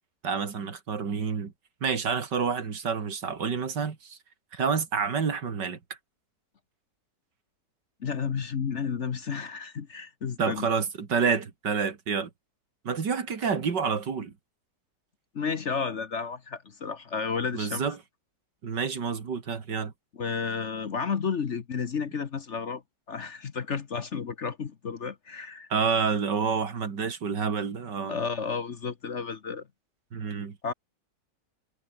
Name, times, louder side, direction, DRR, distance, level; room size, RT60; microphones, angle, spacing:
voice 1, 0.2-1.5 1.8-4.2 4.5-5.8 10.4-12.3 12.8-14.3 17.5-18.0 18.6-19.9 25.7-28.2 30.1-30.6, right 6 dB, 75° right, 2.8 m, -28 dB
voice 2, 8.0-10.7 15.3-17.8 20.1-22.8 23.1-25.7 28.1-29.6 30.6-30.7, left 6 dB, 45° left, 1.3 m, -32 dB
omnidirectional pair, 1.9 m